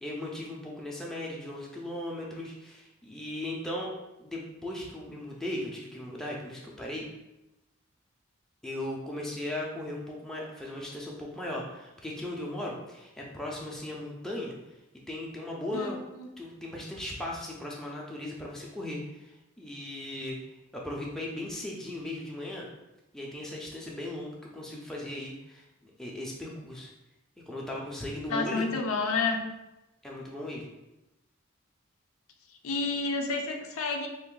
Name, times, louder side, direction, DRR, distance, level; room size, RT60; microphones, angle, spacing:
voice 1, 0.0-3.9 4.2-7.1 8.6-14.6 15.1-16.0 16.4-20.4 20.8-22.7 23.1-26.9 27.5-28.7 30.0-30.7, left 1 dB, ahead, -3 dB, 0.5 m, -37 dB
voice 2, 15.7-16.3 28.3-29.4 32.6-34.1, left 4 dB, 90° left, 3 dB, 0.5 m, -30 dB
3.4 x 2.6 x 3.7 m, 0.96 s
head